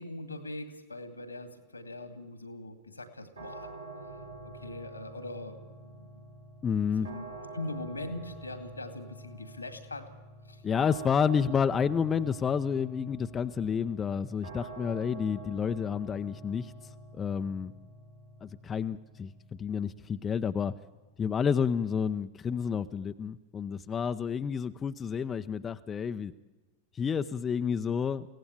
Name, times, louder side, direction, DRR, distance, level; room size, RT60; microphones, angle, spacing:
voice 1, 0.0-3.7 4.4-6.3 7.0-7.2 7.5-10.1 10.5-10.6, left 2 dB, 80° left, 9 dB, 2.2 m, -41 dB
sound 1, 3.4-22.3, right 2 dB, 80° right, 4.2 m, -47 dB
voice 2, 6.6-7.1 10.6-16.7 17.1-17.7 18.4-20.7 21.2-26.3 26.9-28.3, left 7 dB, 20° left, 9 dB, 0.7 m, -30 dB
23.0 x 17.0 x 8.9 m, 1.2 s
figure-of-eight pair, 90°, 0 cm